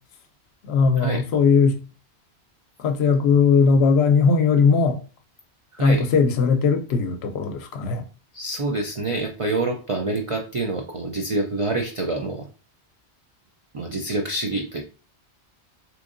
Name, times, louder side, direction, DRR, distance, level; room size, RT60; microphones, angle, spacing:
voice 1, 0.6-1.8 2.8-5.0 5.8-8.0, left 5 dB, 70° left, 0.8 m, -19 dB
voice 2, 5.7-6.1 8.3-12.5 13.7-14.8, right 2 dB, 60° right, 0.3 m, -26 dB
3.5 x 3.1 x 2.5 m
omnidirectional pair, 1.2 m